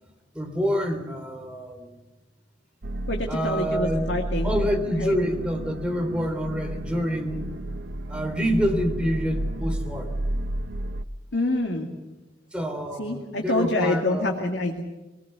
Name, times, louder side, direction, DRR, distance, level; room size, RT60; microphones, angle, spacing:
voice 1, 0.3-1.9 3.3-4.1 4.4-7.5 8.1-10.1 12.5-14.3, equal, 5° right, 3 dB, 3.5 m, -27 dB
sound 1, 2.8-11.0, right 1 dB, 85° right, 0.9 m, -32 dB
voice 2, 3.1-4.6 5.0-5.1 11.3-11.9 13.0-14.8, left 2 dB, 85° left, 2 dB, 2.3 m, -26 dB
24.5 x 19.0 x 8.1 m, 1.1 s
head